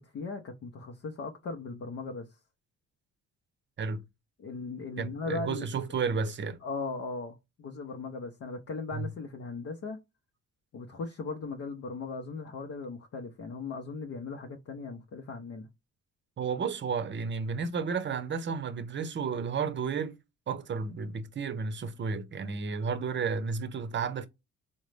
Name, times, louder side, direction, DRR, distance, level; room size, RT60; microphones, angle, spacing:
voice 1, 0.0-2.4 4.4-5.8 6.6-10.0 10.7-15.7, left 3 dB, 50° left, 0.7 m, -38 dB
voice 2, 5.0-6.6 8.9-9.1 16.4-20.2 20.5-24.3, right 5 dB, 40° right, 0.7 m, -32 dB
3.8 x 2.1 x 3.2 m
cardioid pair, 90°, 30 cm